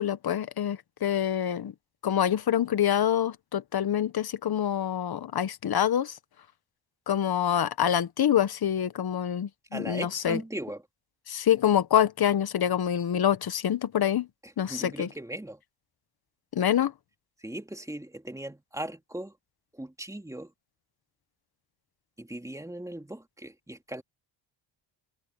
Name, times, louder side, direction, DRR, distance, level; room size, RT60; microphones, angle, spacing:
voice 1, 0.0-1.7 2.0-6.2 7.1-10.4 11.3-14.3 14.6-15.1 16.5-16.9, left 10 dB, 50° left, 1.5 m, -26 dB
voice 2, 9.7-10.8 14.4-15.6 17.4-19.4 19.7-20.5 22.2-24.0, right 1 dB, 5° right, 3.0 m, -38 dB
cardioid pair, 80°, 48 cm